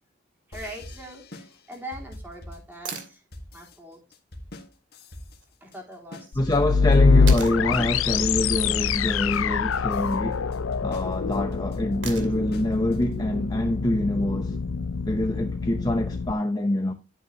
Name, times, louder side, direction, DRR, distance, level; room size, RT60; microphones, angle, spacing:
sound 1, 0.5-13.4, left 1 dB, 50° left, 1.8 m, -43 dB
voice 1, 0.5-1.2 1.7-3.2 3.5-4.0 5.6-6.5 7.8-7.9, right 1 dB, 10° right, 3.6 m, -41 dB
sound 2, 2.8-3.1 5.4-5.5 7.3-7.6 9.6-10.0 12.0-12.5 14.6-14.7, right 7 dB, 65° right, 2.5 m, -37 dB
sound 3, 6.3-16.3, left 5 dB, 85° left, 0.5 m, -24 dB
voice 2, 6.3-10.5 10.8-14.6 15.0-16.9, left 1 dB, 20° left, 0.8 m, -25 dB
11.5 x 9.2 x 2.9 m
head